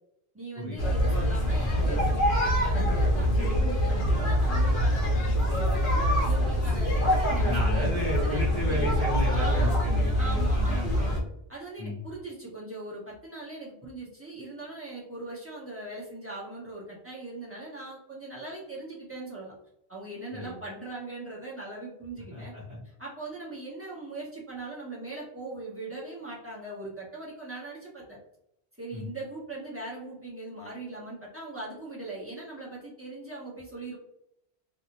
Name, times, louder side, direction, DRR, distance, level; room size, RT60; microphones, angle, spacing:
voice 1, 0.3-5.9 6.2-8.5 9.3-9.8 10.1-11.2 11.5-19.5 19.9-22.5 22.8-28.2 28.8-34.0, right 2 dB, 15° right, -6 dB, 0.8 m, -40 dB
sound 1, 0.8-11.2, equal, 60° left, 0.8 m, -24 dB
voice 2, 7.5-11.1 11.8-12.0 20.3-20.5 22.3-22.8 28.9-29.0, left 1 dB, 55° right, -8 dB, 1.1 m, -33 dB
2.5 x 2.0 x 2.8 m, 0.78 s
omnidirectional pair, 1.1 m